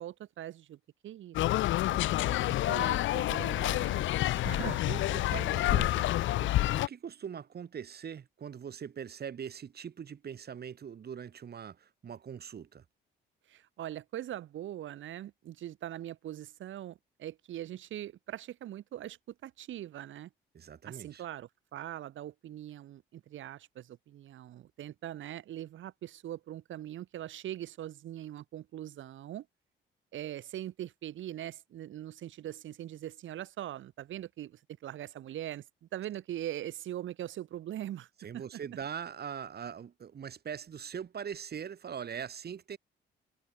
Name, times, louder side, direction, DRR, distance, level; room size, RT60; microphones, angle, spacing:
voice 1, 0.0-1.4 2.4-4.0 4.4-4.8 13.5-20.3 20.8-29.5 30.1-38.1 38.3-38.6, right 12 dB, 75° right, 4.5 m, -41 dB
sound 1, 1.3-6.9, left 15 dB, 75° left, 0.6 m, -28 dB
voice 2, 1.9-2.4 4.4-4.5 4.8-6.1 6.3-12.8 20.5-21.2 38.2-42.8, right 8 dB, 55° right, 7.6 m, -42 dB
cardioid pair, 90°, 20 cm